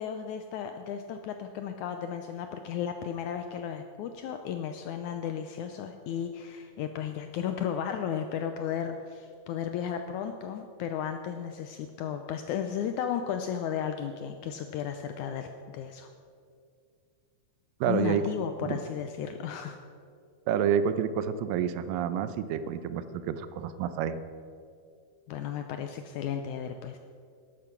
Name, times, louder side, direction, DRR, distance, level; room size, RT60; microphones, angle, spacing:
voice 1, 0.0-16.1 17.8-19.8 25.3-27.0, left 8 dB, 85° left, 7 dB, 1.7 m, -34 dB
voice 2, 17.8-18.2 18.6-18.8 20.5-24.2, right 8 dB, 80° right, 12 dB, 2.3 m, -29 dB
12.5 x 11.5 x 5.9 m, 2.3 s
omnidirectional pair, 4.0 m